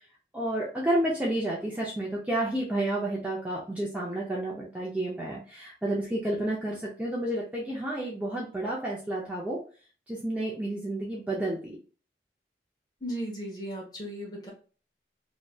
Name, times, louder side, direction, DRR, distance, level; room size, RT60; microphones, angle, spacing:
voice 1, 0.3-9.6 10.1-11.8, right 1 dB, 10° right, -5 dB, 0.5 m, -30 dB
voice 2, 13.0-14.5, equal, 20° left, -2 dB, 1.0 m, -36 dB
3.2 x 2.7 x 2.3 m, 0.38 s
head